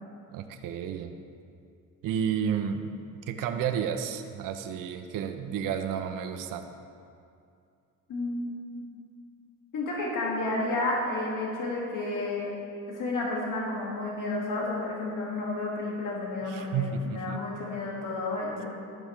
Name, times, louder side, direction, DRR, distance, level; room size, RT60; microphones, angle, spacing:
voice 1, 0.3-1.2 2.0-6.6 16.5-17.4, right 7 dB, 60° right, 6 dB, 0.8 m, -31 dB
voice 2, 8.1-8.8 9.7-12.5 12.9-18.7, left 2 dB, 55° left, -3 dB, 2.2 m, -31 dB
12.5 x 12.0 x 3.3 m, 2.4 s
cardioid pair, 115°, 38 cm